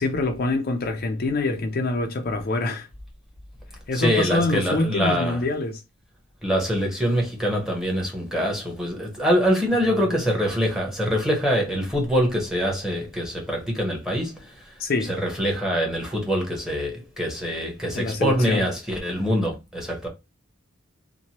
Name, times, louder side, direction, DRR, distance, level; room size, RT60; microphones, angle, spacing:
voice 1, 0.0-2.9 3.9-5.8 14.8-15.1 17.9-18.6, left 2 dB, 45° left, 0.4 m, -25 dB
voice 2, 3.9-5.4 6.4-14.4 15.1-20.1, equal, ahead, 0.9 m, -24 dB
2.8 x 2.2 x 2.8 m
head